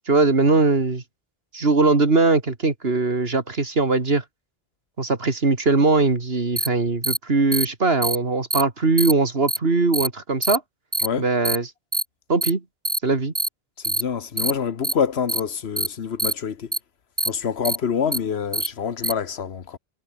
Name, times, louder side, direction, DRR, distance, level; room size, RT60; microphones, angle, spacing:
voice 1, 0.1-1.0 1.5-4.2 5.0-10.6 11.2-11.7 12.3-12.6 13.0-13.3, right 3 dB, 75° right, 2.8 m, -20 dB
sound 1, 6.6-6.7 7.0-7.2 7.5-7.7 8.0-8.2 8.5-8.6 9.0-9.1 9.5-9.6 9.9-10.1 10.4-10.6 10.9-11.1 11.4-11.6 11.9-12.0 12.4-12.5 12.8-13.0 13.3-13.5 13.8-14.0 14.4-14.5 14.8-14.9 15.3-15.4 15.8-15.9 16.2-16.3 16.7-16.8 17.2-17.3 17.6-17.8 18.1-18.2 18.5-18.7 19.0-19.1, right 2 dB, 20° right, 1.5 m, -23 dB
voice 2, 13.8-16.7 17.2-19.8, left 7 dB, 90° left, 1.4 m, -26 dB
omnidirectional pair, 1.0 m